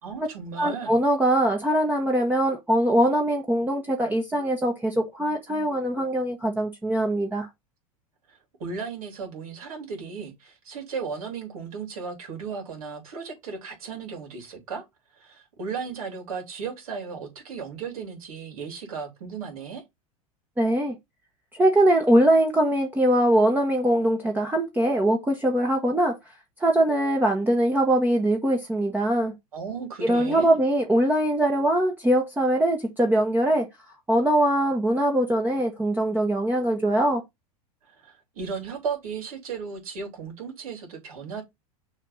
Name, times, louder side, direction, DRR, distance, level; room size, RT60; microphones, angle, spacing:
voice 1, 0.0-1.0 8.3-14.8 15.2-19.8 29.5-30.6 37.9-41.4, right 5 dB, 70° right, 3.2 m, -35 dB
voice 2, 0.6-7.5 20.6-21.0 21.5-26.2 26.6-29.3 30.0-33.7 34.1-37.2, right 1 dB, 10° right, 1.2 m, -22 dB
6.3 x 3.4 x 5.4 m
figure-of-eight pair, 85°, 19 cm